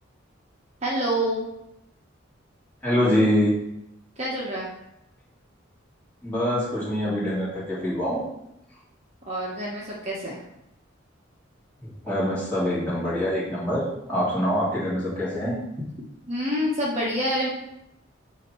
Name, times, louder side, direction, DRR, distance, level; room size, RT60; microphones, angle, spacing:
voice 1, 0.8-1.4 4.2-4.7 9.3-10.4 16.3-17.5, equal, 35° right, -4 dB, 1.1 m, -27 dB
voice 2, 2.8-3.5 6.2-8.2 11.8-15.6, equal, 10° left, -9 dB, 2.3 m, -25 dB
8.3 x 2.9 x 4.5 m, 0.83 s
head